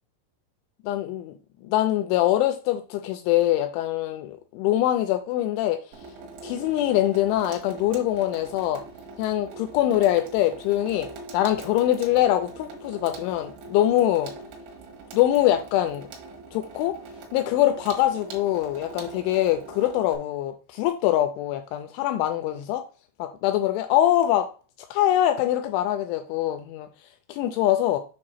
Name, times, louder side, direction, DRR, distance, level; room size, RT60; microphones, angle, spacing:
voice 1, 0.8-1.4 1.6-5.8 6.4-8.8 9.2-11.1 11.3-14.3 15.1-16.1 16.5-17.0 17.3-22.8 23.2-24.5 24.9-26.9 27.3-28.0, left 13 dB, 85° left, 2.7 m, -23 dB
Water tap faucet / Sink (filling or washing), 5.9-20.2, right 3 dB, 70° right, 3.4 m, -42 dB
7.5 x 2.6 x 5.7 m
omnidirectional pair, 5.9 m